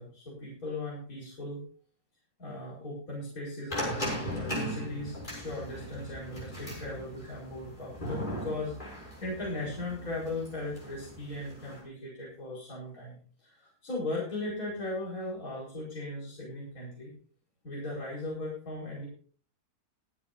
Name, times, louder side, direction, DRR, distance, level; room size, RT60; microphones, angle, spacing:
voice 1, 0.0-1.6 2.4-17.1 17.6-19.1, left 2 dB, 65° left, -5 dB, 5.5 m, -38 dB
sound 1, 3.7-11.8, equal, 30° left, 6.5 m, -38 dB
23.0 x 10.0 x 2.7 m, 0.43 s
omnidirectional pair, 1.6 m